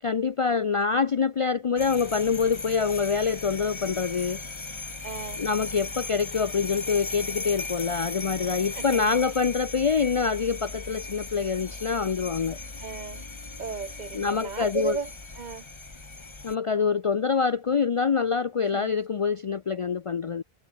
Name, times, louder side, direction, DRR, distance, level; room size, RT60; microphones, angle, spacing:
voice 1, 0.0-4.4 5.4-12.6 14.1-15.0 16.4-20.4, left 5 dB, 45° left, 0.4 m, -25 dB
sound 1, 1.8-16.5, left 3 dB, 25° left, 1.3 m, -37 dB
voice 2, 5.0-5.4 8.8-9.0 12.8-13.2 13.6-15.1 15.4-15.7 18.7-18.9, right 5 dB, 45° right, 1.0 m, -34 dB
omnidirectional pair, 1.1 m